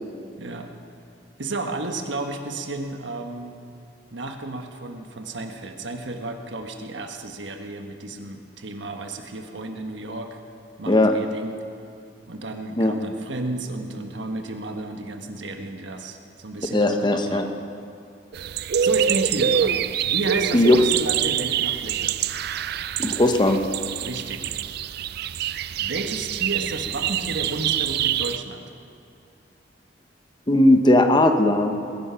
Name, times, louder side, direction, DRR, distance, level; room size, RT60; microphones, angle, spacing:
voice 1, 0.4-0.7 1.4-3.6 4.1-10.4 10.8-11.6 12.3-17.5 18.8-22.2 24.0-24.6 25.8-28.7, right 2 dB, 75° right, 4 dB, 1.4 m, -32 dB
voice 2, 16.7-17.5 20.5-20.8 23.0-23.6 30.5-31.7, left 1 dB, 25° left, 6 dB, 0.9 m, -18 dB
sound 1, 18.3-28.4, right 9 dB, 60° right, 0.4 m, -25 dB
20.5 x 11.0 x 5.7 m, 2.4 s
head